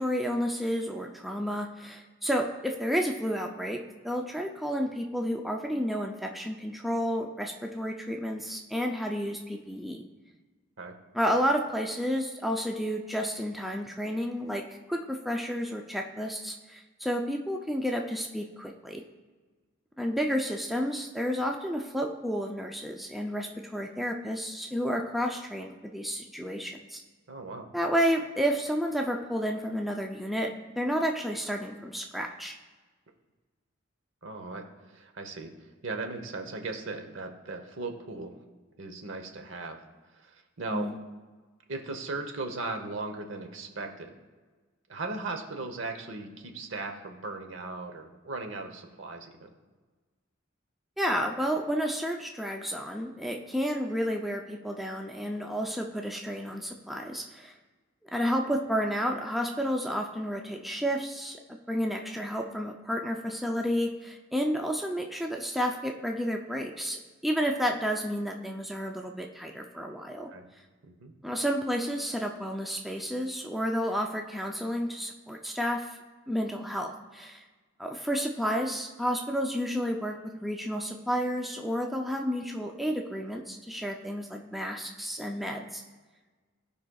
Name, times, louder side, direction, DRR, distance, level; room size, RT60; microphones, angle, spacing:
voice 1, 0.0-10.0 11.1-19.0 20.0-27.0 27.7-32.5 40.7-40.9 51.0-57.5 58.1-61.4 61.7-70.3 71.2-76.0 76.3-77.4 77.8-85.8, equal, ahead, 1 dB, 0.4 m, -31 dB
voice 2, 27.3-27.7 34.2-35.5 35.8-38.4 38.8-39.8 40.1-40.9 41.7-44.1 44.9-49.5 70.3-70.4 70.8-71.1, right 3 dB, 70° right, 6 dB, 0.9 m, -37 dB
15.0 x 5.1 x 2.3 m, 1.3 s
head